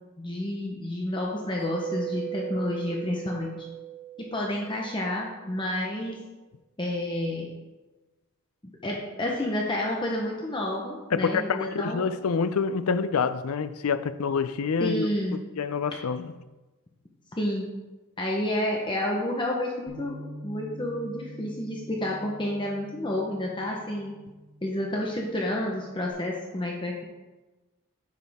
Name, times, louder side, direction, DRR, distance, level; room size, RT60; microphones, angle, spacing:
voice 1, 0.2-3.6 4.2-6.2 6.8-7.5 8.8-12.1 14.8-15.4 17.4-17.7 18.2-24.1 24.6-27.0, left 1 dB, 20° left, 0.9 m, -30 dB
Mallet percussion, 1.6-5.1, right 10 dB, 10° right, 2.3 m, -37 dB
voice 2, 11.1-16.3, left 5 dB, 85° left, 0.5 m, -27 dB
Bass guitar, 19.9-26.1, equal, 75° right, 2.3 m, -46 dB
9.4 x 7.4 x 3.5 m
head